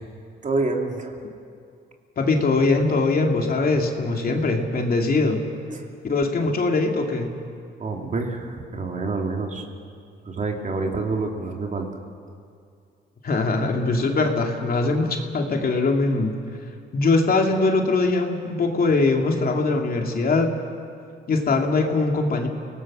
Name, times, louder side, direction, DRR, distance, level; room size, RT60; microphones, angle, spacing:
voice 1, 0.4-1.2 5.7-5.9 7.8-9.7 10.3-11.9, right 3 dB, 40° right, 2 dB, 2.8 m, -27 dB
voice 2, 2.2-5.4 6.0-7.3 13.2-16.4 16.9-20.5 21.3-22.5, left 3 dB, 50° left, 2 dB, 2.6 m, -21 dB
29.0 x 18.5 x 6.2 m, 2.3 s
cardioid pair, 90°, 20 cm